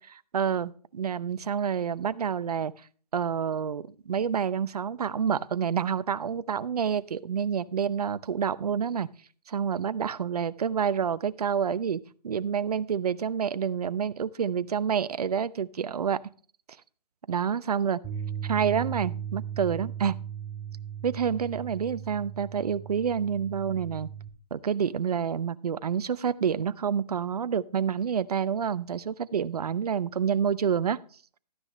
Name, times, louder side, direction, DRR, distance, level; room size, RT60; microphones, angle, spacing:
voice 1, 0.0-2.7 3.1-9.1 9.5-16.2 17.3-18.0 18.4-20.1 21.0-24.1 24.5-31.0, right 7 dB, 65° right, 15 dB, 0.7 m, -28 dB
Bass guitar, 18.0-24.3, right 9 dB, ahead, 1.9 m, -37 dB
13.0 x 9.7 x 3.1 m, 0.42 s
hypercardioid pair, 150°, 21 cm